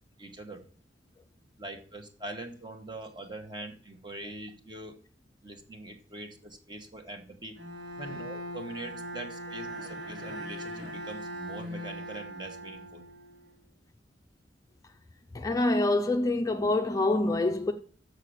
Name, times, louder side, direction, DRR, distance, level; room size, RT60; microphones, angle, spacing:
voice 1, 0.2-0.6 1.6-5.0 5.4-7.6 8.0-13.1, right 2 dB, 25° right, 1.3 m, -43 dB
Bowed string instrument, 7.5-13.5, equal, 70° right, 2.9 m, -40 dB
voice 2, 15.3-17.7, left 2 dB, 20° left, 0.5 m, -26 dB
6.6 x 6.6 x 6.5 m
head